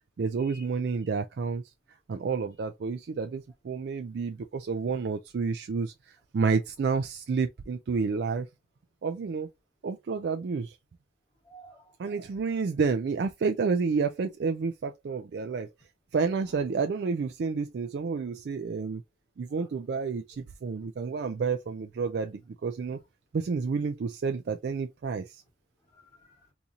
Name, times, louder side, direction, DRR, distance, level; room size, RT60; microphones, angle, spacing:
voice 1, 0.2-1.6 2.1-5.9 6.3-8.5 9.0-9.5 9.8-10.8 12.0-15.7 16.1-19.0 19.4-23.0 23.3-25.4, right 5 dB, 60° right, 0.3 m, -30 dB
voice 2, 11.4-12.4 16.3-16.6 19.5-19.7 22.9-23.0 25.9-26.5, right 2 dB, 25° left, 2.4 m, -55 dB
4.0 x 2.9 x 2.4 m
head